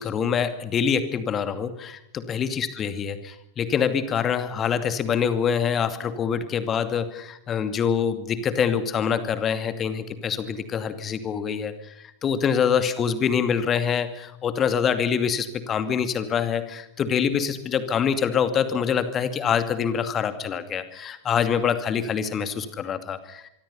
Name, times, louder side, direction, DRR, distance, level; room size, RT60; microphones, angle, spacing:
voice 1, 0.0-11.9 12.2-23.5, left 7 dB, 25° left, 10 dB, 2.5 m, -25 dB
25.5 x 24.0 x 5.7 m, 0.78 s
figure-of-eight pair, 90°, 0 cm